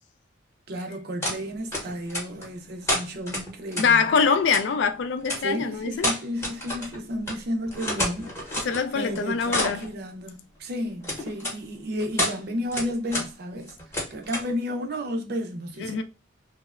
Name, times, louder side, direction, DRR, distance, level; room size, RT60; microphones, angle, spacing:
voice 1, 0.7-4.1 5.4-16.0, equal, 55° right, 0.5 m, -32 dB
sound 1, 1.2-1.4 1.7-2.5 2.9-3.9 4.5-4.6 5.2-5.4 6.0-7.0 7.2-7.4 7.7-8.8 9.2-9.9 11.0-11.5 12.0-12.4 12.7-13.3 13.6-14.5, left 1 dB, 15° left, 0.8 m, -29 dB
voice 2, 3.7-6.1 8.6-9.9 15.8-16.0, left 5 dB, 65° left, 0.3 m, -24 dB
2.8 x 2.0 x 2.3 m
head